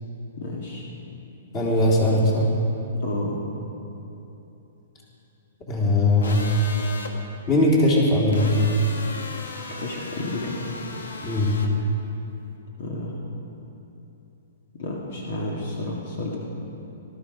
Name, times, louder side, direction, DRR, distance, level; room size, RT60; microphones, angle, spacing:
voice 1, 0.4-0.9 3.0-3.4 9.8-10.6 12.8-13.2 14.8-16.4, left 2 dB, 60° left, -2 dB, 2.0 m, -31 dB
voice 2, 1.5-2.5 5.7-6.5 7.5-8.5 11.2-11.5, left 1 dB, 25° left, -3 dB, 3.2 m, -20 dB
sound 1, 6.2-7.1 8.3-11.7, left 3 dB, 90° left, 1.7 m, -37 dB
18.5 x 13.0 x 5.1 m, 3.0 s
hypercardioid pair, 155°, 0 cm